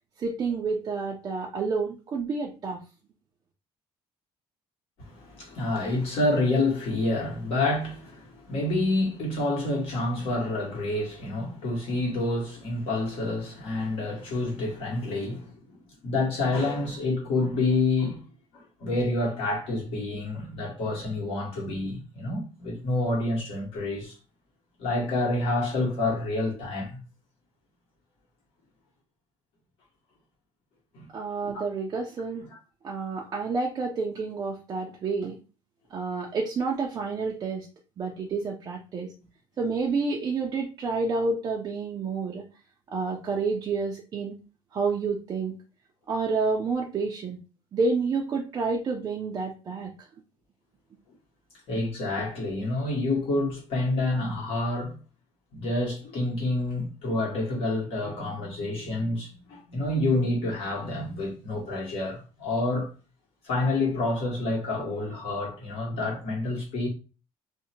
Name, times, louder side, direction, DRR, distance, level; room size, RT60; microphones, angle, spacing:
voice 1, 0.2-2.8 31.1-32.5 32.8-35.4 35.9-37.7 38.0-39.1 39.6-42.4 42.9-44.3 44.7-45.5 46.1-47.4 47.7-49.9, right 4 dB, 35° right, 0.4 m, -29 dB
voice 2, 5.0-18.2 18.5-24.1 24.8-27.0 30.9-31.0 51.7-54.9 55.5-62.9 63.4-66.9, left 2 dB, 65° left, 1.3 m, -28 dB
2.6 x 2.1 x 2.7 m
cardioid pair, 145°, 11 cm